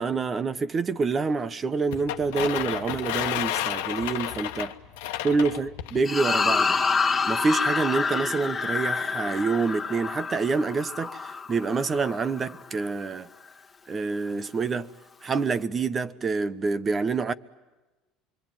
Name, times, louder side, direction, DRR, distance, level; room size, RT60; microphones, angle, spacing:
voice 1, 0.0-4.7 5.2-6.8 7.3-13.3 13.9-14.9 15.2-17.3, right 4 dB, 30° right, 1.0 m, -27 dB
sound 1, 1.9-6.0, left 13 dB, 85° left, 1.2 m, -31 dB
sound 2, 6.0-12.6, left 5 dB, 20° left, 1.8 m, -27 dB
26.0 x 24.0 x 9.0 m
supercardioid pair, 100°, 0 cm